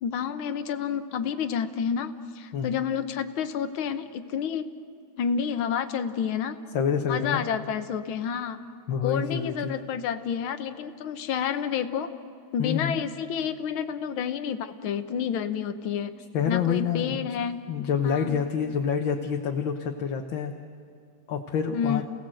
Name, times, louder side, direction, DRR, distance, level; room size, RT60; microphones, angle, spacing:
voice 1, 0.0-4.7 5.2-6.6 7.1-8.6 9.0-12.1 12.5-16.1 16.5-17.7 18.0-18.4 21.7-22.0, left 7 dB, 90° left, 10 dB, 1.8 m, -29 dB
voice 2, 6.7-7.4 8.9-9.7 12.6-13.0 16.3-17.3 17.7-20.5 21.3-22.0, left 7 dB, 75° left, 3 dB, 1.9 m, -27 dB
29.0 x 18.0 x 7.7 m, 2.3 s
omnidirectional pair, 2.2 m